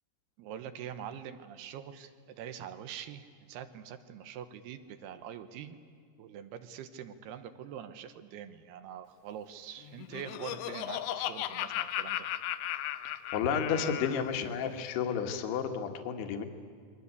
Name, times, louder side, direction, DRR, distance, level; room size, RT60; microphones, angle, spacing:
voice 1, 0.4-5.8 6.2-12.3, right 9 dB, 75° right, 11 dB, 2.9 m, -44 dB
Laughter, 9.8-14.3, left 13 dB, 90° left, 3.2 m, -36 dB
voice 2, 13.3-16.5, left 7 dB, 70° left, 5 dB, 3.5 m, -31 dB
28.0 x 22.5 x 8.3 m, 2.1 s
omnidirectional pair, 5.0 m